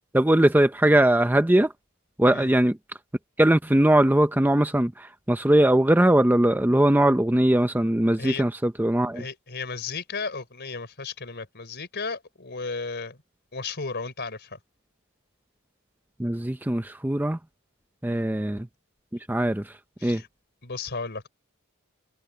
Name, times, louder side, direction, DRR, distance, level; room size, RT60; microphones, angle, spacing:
voice 1, 0.1-1.7 2.2-2.8 3.4-9.2 16.2-17.4 18.0-18.7 19.3-20.2, right 1 dB, 10° right, 0.5 m, -21 dB
voice 2, 9.2-13.2 13.5-14.6 18.0-18.3 20.0-20.3 20.6-21.3, left 4 dB, 50° left, 4.4 m, -34 dB
head